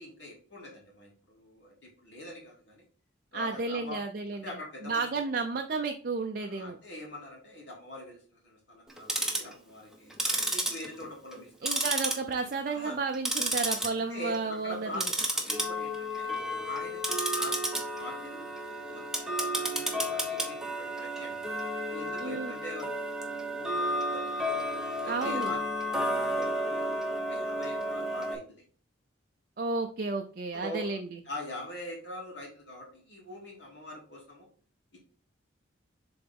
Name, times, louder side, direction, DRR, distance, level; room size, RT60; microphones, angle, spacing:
voice 1, 0.0-2.8 3.3-4.0 4.4-5.3 6.4-11.5 11.8-11.9 12.7-13.0 13.9-15.1 15.4-17.6 18.0-18.4 18.8-21.5 21.9-22.9 23.3-24.6 25.0-25.6 25.9-28.6 30.5-31.0 31.2-34.5, left 1 dB, 65° left, -2 dB, 2.7 m, -43 dB
voice 2, 3.3-4.6 4.8-6.8 11.6-15.1 22.2-22.5 25.1-25.5 29.6-31.2, right 3 dB, 50° right, 4 dB, 0.5 m, -32 dB
Tick-tock, 8.9-9.5 10.1-11.4 11.7-12.5 12.9-13.9 14.2-14.5 14.9-28.3, equal, 5° right, 0.9 m, -32 dB
6.8 x 3.9 x 3.6 m, 0.41 s
head